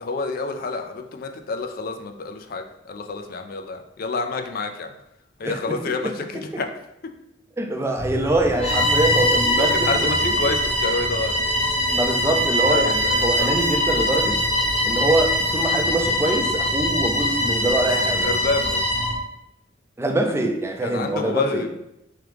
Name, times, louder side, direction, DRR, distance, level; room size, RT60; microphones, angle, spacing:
voice 1, 0.0-4.9 5.4-6.7 7.0-7.1 9.6-11.4 12.7-13.5 18.0-18.8 20.3-20.4 20.8-21.7, left 3 dB, 50° left, 0.4 m, -28 dB
voice 2, 5.4-5.8 7.6-10.3 11.9-14.4 14.8-18.3 20.0-21.6, right 1 dB, 15° right, 0.4 m, -24 dB
sound 1, 8.0-19.2, equal, 35° right, 0.9 m, -33 dB
Bowed string instrument, 8.6-19.2, equal, 30° left, 0.8 m, -22 dB
3.5 x 3.2 x 3.4 m
head